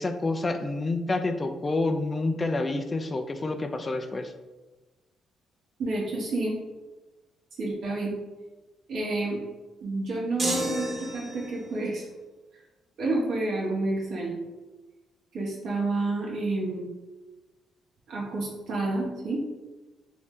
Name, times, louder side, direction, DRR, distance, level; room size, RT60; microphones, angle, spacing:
voice 1, 0.0-4.3, left 2 dB, 25° left, 6 dB, 0.3 m, -28 dB
voice 2, 5.8-6.5 7.6-8.1 8.9-9.4 9.8-12.1 13.0-14.4 15.3-16.8 18.1-19.4, right 2 dB, 70° right, -4 dB, 0.9 m, -29 dB
sound 1, 10.4-11.7, right 1 dB, 35° right, 1.0 m, -31 dB
3.0 x 2.6 x 3.6 m, 1.2 s
cardioid pair, 90°, 0 cm